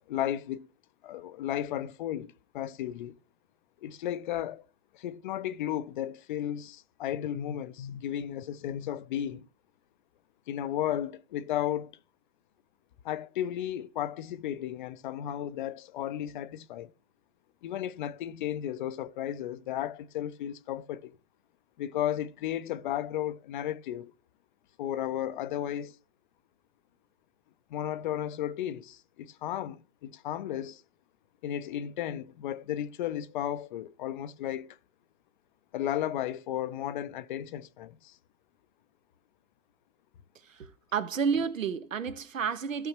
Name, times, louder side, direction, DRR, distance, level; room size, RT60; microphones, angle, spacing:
voice 1, 0.1-0.7 1.0-3.2 3.8-4.6 4.9-9.5 10.5-11.9 13.0-16.9 17.6-21.2 21.8-24.1 24.8-26.0 27.7-30.8 31.4-34.8 35.7-38.2, left 11 dB, 40° left, 0.6 m, -34 dB
voice 2, 40.4-42.9, right 6 dB, 80° right, 1.4 m, -31 dB
15.0 x 6.3 x 3.0 m
hypercardioid pair, 130°, 38 cm